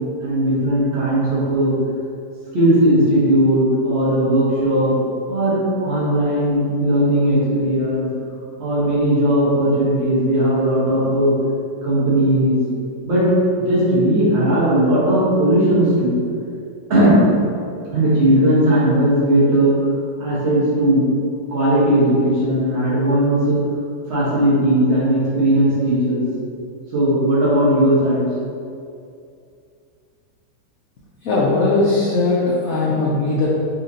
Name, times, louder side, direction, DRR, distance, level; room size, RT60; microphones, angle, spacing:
voice 1, 0.2-1.7 2.5-4.9 5.3-8.1 8.6-11.3 11.8-12.6 13.1-13.3 13.6-16.1 16.9-17.2 17.9-19.7 20.2-21.0 21.5-23.6 24.1-26.2 26.9-28.2, right 1 dB, 40° right, -9 dB, 1.4 m, -17 dB
voice 2, 31.2-33.5, left 2 dB, 65° left, -6 dB, 0.9 m, -19 dB
5.5 x 2.9 x 2.7 m, 2.4 s
omnidirectional pair, 1.9 m